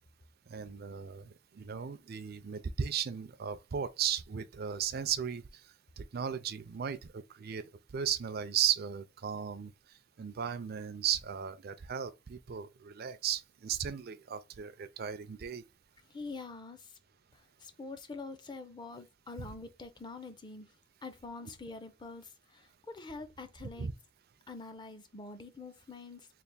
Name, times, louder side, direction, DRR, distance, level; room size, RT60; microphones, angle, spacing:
voice 1, 0.5-5.4 6.0-9.7 10.2-15.6 23.8-23.9, right 8 dB, 55° right, 0.4 m, -36 dB
voice 2, 16.1-17.0 17.3-20.7 21.0-23.9 24.5-26.3, left 3 dB, 25° left, 0.5 m, -45 dB
3.4 x 2.4 x 3.9 m
head